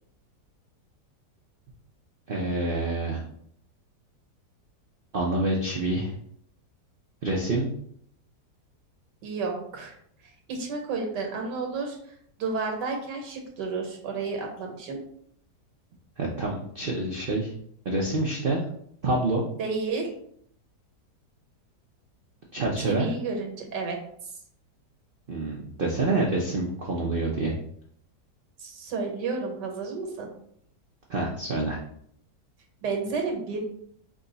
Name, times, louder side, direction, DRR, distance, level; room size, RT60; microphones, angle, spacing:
voice 1, 2.3-3.2 5.1-6.1 7.2-7.7 16.2-17.5 17.8-18.6 19.0-19.4 22.5-23.1 25.3-27.5 31.1-31.8, right 2 dB, 65° right, -2 dB, 0.5 m, -27 dB
voice 2, 9.2-9.9 10.5-12.0 12.4-15.0 19.6-20.1 22.8-24.0 28.6-30.3 32.8-33.6, right 4 dB, 85° right, 2 dB, 1.6 m, -31 dB
4.9 x 2.3 x 3.9 m, 0.66 s
omnidirectional pair, 1.8 m